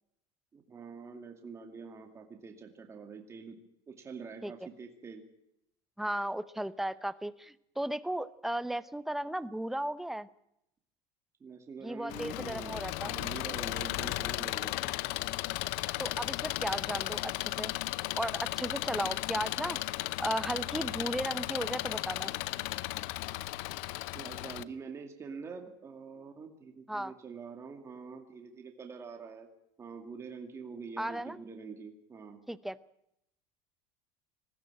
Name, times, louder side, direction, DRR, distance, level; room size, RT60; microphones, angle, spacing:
voice 1, 0.5-3.6 3.9-5.2 11.4-14.8 24.1-29.5 29.8-32.4, right 5 dB, 20° right, 3 dB, 2.3 m, -45 dB
voice 2, 6.0-10.3 11.8-13.1 16.0-17.7 18.2-19.8 20.2-22.3 26.9-27.1 31.0-31.4 32.5-32.8, right 1 dB, ahead, 14 dB, 0.7 m, -35 dB
Engine, 12.1-24.6, left 19 dB, 65° left, 0.7 m, -35 dB
20.5 x 15.0 x 9.0 m, 0.79 s
supercardioid pair, 135°, 13 cm